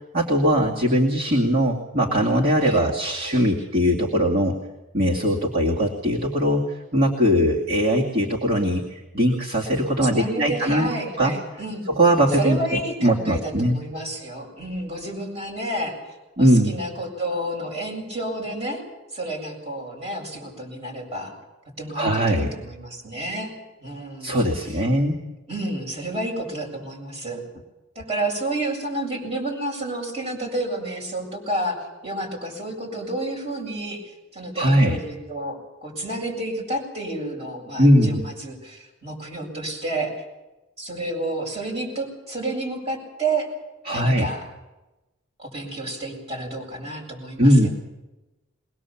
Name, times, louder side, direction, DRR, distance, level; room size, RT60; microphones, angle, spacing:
voice 1, 0.1-4.5 4.9-11.3 11.9-13.8 16.4-16.7 21.9-22.5 24.2-25.2 34.5-35.0 37.8-38.2 43.9-44.3 47.4-47.7, equal, 45° right, -3 dB, 2.4 m, -20 dB
voice 2, 10.0-11.9 12.3-18.8 19.1-21.3 21.8-23.5 23.8-24.4 24.6-24.8 25.5-27.4 28.0-31.8 32.0-40.2 40.8-43.5 43.9-44.5 45.4-47.7, right 1 dB, 30° right, -1 dB, 7.5 m, -30 dB
23.0 x 20.0 x 7.2 m, 1.1 s
head